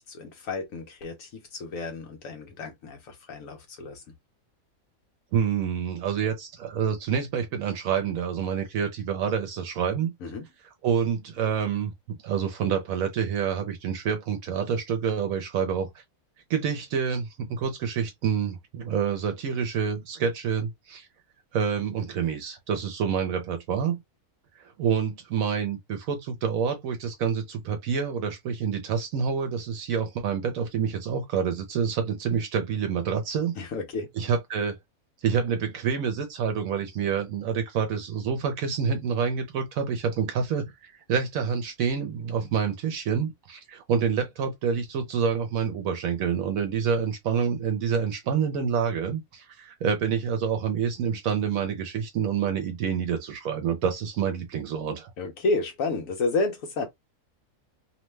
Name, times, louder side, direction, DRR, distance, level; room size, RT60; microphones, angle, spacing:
voice 1, 0.1-4.0 10.2-10.4 33.6-34.1 55.2-56.9, left 3 dB, 75° left, 1.1 m, -31 dB
voice 2, 5.3-10.1 10.8-16.0 16.5-21.1 21.5-24.0 24.6-33.5 34.1-34.8 35.2-55.1, right 7 dB, 75° right, 1.0 m, -27 dB
2.8 x 2.1 x 3.1 m
omnidirectional pair, 1.5 m